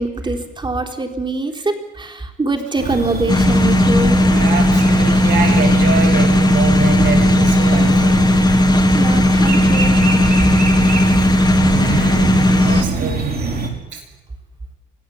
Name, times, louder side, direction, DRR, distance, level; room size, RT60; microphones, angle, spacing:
voice 1, 0.0-4.2 8.9-10.0, right 2 dB, 25° right, 4 dB, 3.9 m, -23 dB
sound 1, 2.8-13.7, right 4 dB, 50° right, 5.5 m, -25 dB
sound 2, 3.3-12.8, left 1 dB, 20° left, 2.7 m, -14 dB
voice 2, 4.3-8.2 10.7-13.4 13.9-14.0, right 5 dB, 75° right, 2 dB, 7.3 m, -25 dB
25.5 x 16.0 x 8.6 m, 0.98 s
cardioid pair, 90°, 20 cm